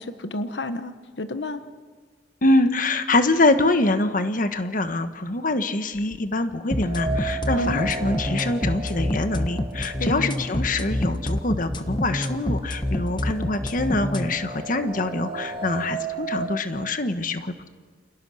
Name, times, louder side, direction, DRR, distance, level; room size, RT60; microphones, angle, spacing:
voice 1, 0.0-1.6 7.6-7.9 10.0-10.3, left 1 dB, 80° left, 10 dB, 1.3 m, -31 dB
voice 2, 2.4-17.7, left 2 dB, 50° left, 9 dB, 1.4 m, -24 dB
sound 1, 6.7-14.3, left 1 dB, 25° left, 1.6 m, -26 dB
sound 2, 6.8-10.8 11.2-11.3 12.2-12.3 12.7-16.6, right 3 dB, 30° right, 1.7 m, -34 dB
29.5 x 27.5 x 6.5 m, 1.5 s
head